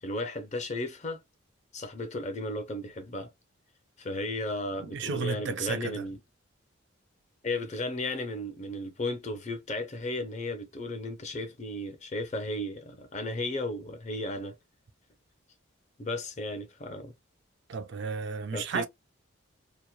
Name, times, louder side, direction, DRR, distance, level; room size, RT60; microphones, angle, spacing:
voice 1, 0.0-1.2 1.7-3.3 4.0-6.2 7.4-14.6 16.0-17.1 18.5-18.9, left 1 dB, 35° left, 0.5 m, -34 dB
voice 2, 4.8-6.0 17.7-18.9, right 5 dB, 55° right, 0.4 m, -33 dB
2.9 x 2.0 x 2.3 m
head